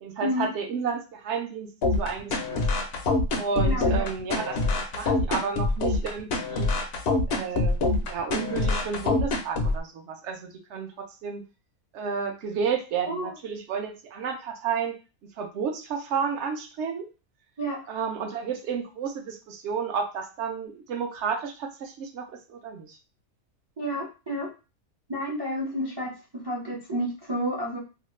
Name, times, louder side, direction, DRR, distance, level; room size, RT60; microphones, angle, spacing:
voice 1, 0.0-2.6 3.4-4.6 4.9-6.7 7.3-11.4 11.9-15.0 15.4-17.1 17.9-23.0, right 6 dB, 60° right, 4 dB, 0.8 m, -31 dB
sound 1, 1.8-9.8, left 2 dB, 65° left, 0.6 m, -25 dB
voice 2, 3.6-4.1 13.1-13.3 17.6-17.8 23.8-24.5 25.1-27.8, equal, 35° right, -3 dB, 0.4 m, -30 dB
2.8 x 2.3 x 3.1 m, 0.31 s
omnidirectional pair, 1.6 m